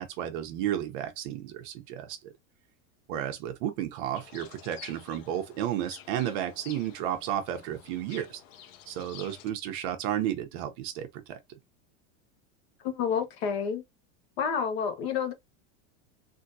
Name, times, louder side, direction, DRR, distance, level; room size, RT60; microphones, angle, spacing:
voice 1, 0.0-2.3 3.1-8.4 8.9-11.6, right 11 dB, 45° right, 0.7 m, -33 dB
sound 1, 4.1-9.5, left 10 dB, 85° left, 0.8 m, -50 dB
voice 2, 12.8-13.8 14.4-15.3, left 7 dB, 55° left, 1.0 m, -29 dB
3.6 x 2.7 x 2.6 m
supercardioid pair, 170°, 37 cm